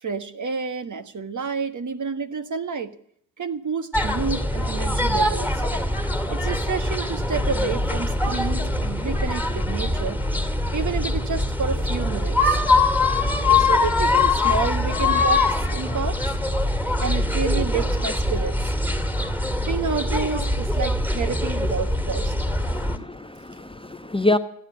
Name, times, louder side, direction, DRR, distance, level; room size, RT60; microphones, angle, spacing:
voice 1, 0.0-2.9 3.4-5.6 6.3-10.2 10.7-12.6 13.5-16.3 17.0-18.7 19.7-22.3, right 5 dB, 40° right, 1.4 m, -29 dB
sound 1, 3.9-23.0, left 2 dB, 5° right, 2.4 m, -23 dB
voice 2, 22.7-24.4, left 2 dB, 10° left, 1.0 m, -26 dB
15.0 x 10.0 x 8.6 m
hypercardioid pair, 40°, 45 cm